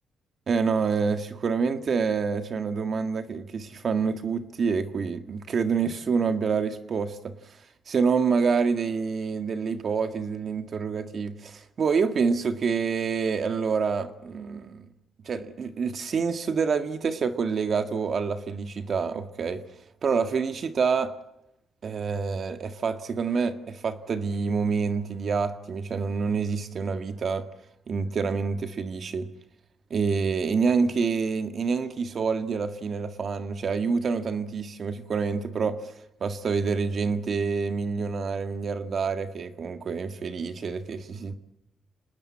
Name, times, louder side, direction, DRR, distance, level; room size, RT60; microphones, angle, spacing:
voice 1, 0.5-14.9 15.2-19.6 20.0-21.1 21.8-27.5 27.9-29.3 29.9-35.9 36.2-41.3, right 5 dB, 50° right, 1.7 m, -27 dB
27.5 x 19.5 x 8.6 m
cardioid pair, 120°, 0 cm